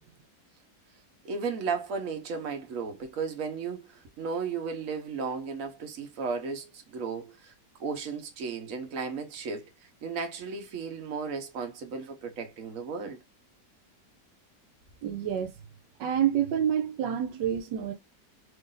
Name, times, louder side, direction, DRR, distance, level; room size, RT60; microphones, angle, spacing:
voice 1, 1.2-7.5 7.8-9.7 10.0-13.2, right 5 dB, 55° right, 1.2 m, -34 dB
voice 2, 15.0-15.5 16.0-17.9, right 9 dB, 85° right, 1.3 m, -28 dB
3.2 x 2.6 x 3.7 m
omnidirectional pair, 1.9 m